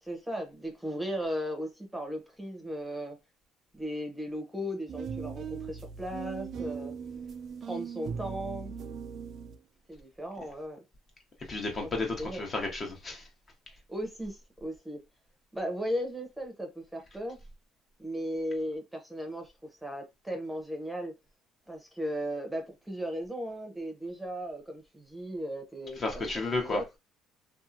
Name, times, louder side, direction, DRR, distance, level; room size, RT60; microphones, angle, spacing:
voice 1, 0.0-3.2 3.7-6.9 7.6-8.7 9.9-10.8 12.2-12.5 13.7-15.0 15.5-17.4 18.0-19.5 19.8-21.1 21.7-26.8, equal, 5° right, 0.8 m, -36 dB
sound 1, 4.9-9.6, right 6 dB, 55° right, 0.3 m, -39 dB
voice 2, 11.5-13.2 26.0-26.8, left 3 dB, 35° left, 1.0 m, -32 dB
2.7 x 2.4 x 2.5 m
supercardioid pair, 90°, 0 cm